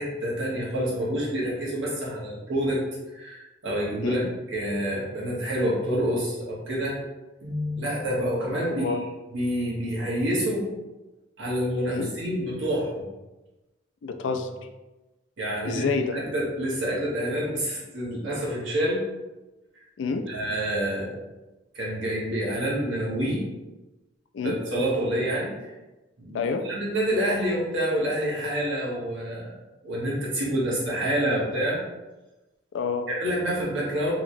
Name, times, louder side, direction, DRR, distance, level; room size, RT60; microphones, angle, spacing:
voice 1, 0.0-2.8 3.1-7.0 7.4-9.0 9.3-10.7 11.4-13.1 15.4-15.8 16.1-19.0 20.3-21.2 21.7-23.5 24.4-25.7 26.2-29.5 29.8-31.8 33.1-34.1, equal, 80° right, -4 dB, 1.0 m, -27 dB
voice 2, 8.7-9.0 11.9-12.1 14.0-14.7 15.6-16.2 20.0-20.2 24.3-24.6 26.3-26.7 32.7-33.1, left 4 dB, 75° left, 6 dB, 0.3 m, -28 dB
2.9 x 2.8 x 2.6 m, 1.1 s
head